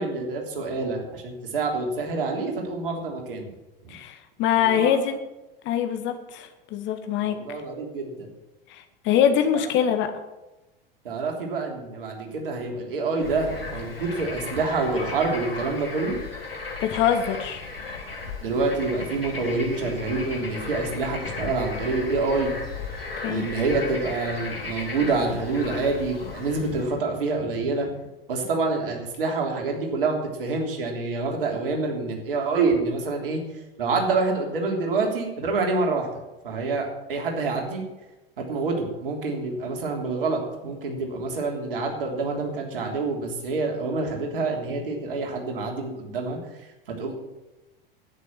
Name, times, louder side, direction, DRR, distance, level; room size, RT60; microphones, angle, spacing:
voice 1, 0.0-3.5 4.6-4.9 7.2-8.3 11.0-16.2 18.4-22.5 23.2-27.9 28.3-33.4 33.8-36.1 36.4-37.8 38.4-46.4 47.0-47.1, right 3 dB, 65° right, 1 dB, 3.4 m, -27 dB
voice 2, 3.9-5.2 5.6-7.6 8.7-10.1 16.8-17.7 23.2-23.4, left 9 dB, 40° left, 7 dB, 1.7 m, -24 dB
Bird / Frog, 13.2-26.9, left 4 dB, 75° left, 3.9 m, -35 dB
11.0 x 9.3 x 8.8 m, 1.0 s
figure-of-eight pair, 80°, 29 cm